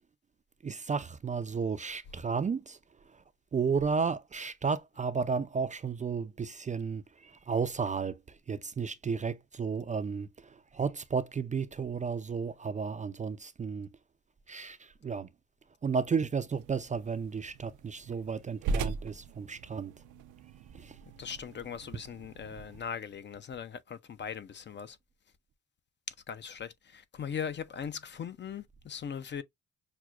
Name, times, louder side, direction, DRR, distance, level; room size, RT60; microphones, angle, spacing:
voice 1, 0.6-2.8 3.1-3.2 3.5-13.9 14.5-15.3 15.8-19.9 20.7-21.0, right 5 dB, 25° right, 0.4 m, -33 dB
sound 1, 16.5-22.8, right 4 dB, 80° right, 0.5 m, -40 dB
voice 2, 21.2-25.0 26.1-29.4, left 7 dB, 40° left, 0.5 m, -39 dB
5.9 x 2.1 x 2.3 m
cardioid pair, 90°, 30 cm